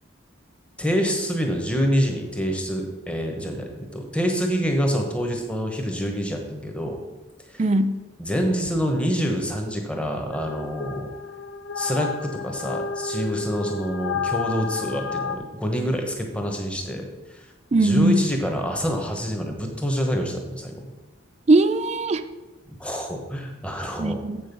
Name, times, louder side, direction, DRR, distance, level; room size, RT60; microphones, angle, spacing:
voice 1, 0.8-7.0 7.5-7.7 8.2-11.1 11.7-17.5 17.7-20.9 22.8-24.2, equal, 5° left, 1.0 m, -26 dB
voice 2, 7.6-8.0 17.7-18.3 21.5-22.2 24.0-24.4, right 2 dB, 35° right, 0.4 m, -19 dB
sound 1, 10.3-15.4, left 5 dB, 65° left, 0.5 m, -31 dB
7.6 x 6.4 x 5.3 m
head